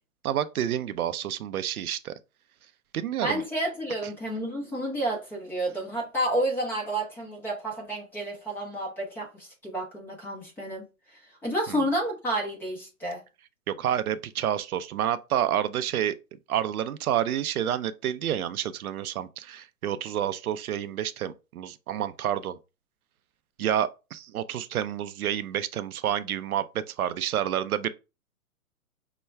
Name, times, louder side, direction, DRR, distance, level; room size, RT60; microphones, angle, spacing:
voice 1, 0.2-2.1 2.9-3.4 11.7-11.8 13.7-16.2 16.5-22.6 23.6-27.9, right 10 dB, 80° right, 0.6 m, -29 dB
voice 2, 3.2-10.8 11.4-13.2, right 1 dB, 5° left, 0.7 m, -30 dB
5.6 x 2.3 x 3.2 m
hypercardioid pair, 150°, 43 cm